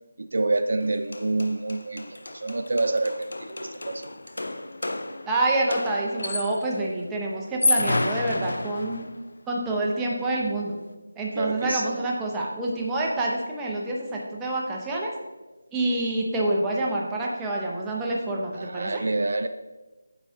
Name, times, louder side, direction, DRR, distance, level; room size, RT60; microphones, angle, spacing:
voice 1, 0.2-4.1 11.3-12.2 18.5-19.5, right 2 dB, 60° right, 9 dB, 0.4 m, -27 dB
sound 1, 0.8-0.9 1.1-6.8 7.4-9.2, left 2 dB, 70° left, 0.5 m, -30 dB
voice 2, 5.3-9.0 9.5-10.7 11.2-15.1 15.7-19.0, right 2 dB, 5° right, -3 dB, 0.6 m, -27 dB
9.0 x 4.0 x 3.6 m, 1.1 s
figure-of-eight pair, 170°, 0 cm